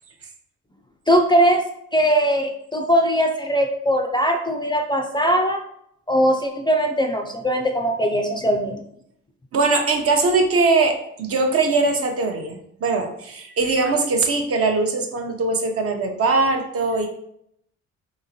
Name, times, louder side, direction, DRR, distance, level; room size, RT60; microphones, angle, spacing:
voice 1, 1.1-1.6 1.9-5.6 6.1-8.8, equal, 15° left, 3 dB, 0.3 m, -20 dB
voice 2, 9.5-17.1, right 3 dB, 50° right, 4 dB, 0.7 m, -21 dB
3.8 x 2.9 x 2.8 m, 0.73 s
cardioid pair, 90°, 30 cm